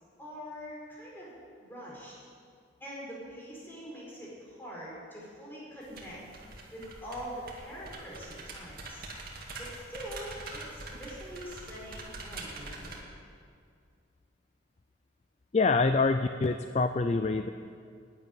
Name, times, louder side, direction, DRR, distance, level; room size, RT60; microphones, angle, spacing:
voice 1, 0.2-1.3 1.6-2.1 2.8-6.2 6.7-9.0 9.6-12.9, equal, 10° left, -6 dB, 4.6 m, -44 dB
sound 1, 5.8-13.0, right 2 dB, 50° right, 2.3 m, -44 dB
voice 2, 15.5-17.5, left 3 dB, 35° left, 9 dB, 0.4 m, -26 dB
12.0 x 9.8 x 9.5 m, 2.2 s
head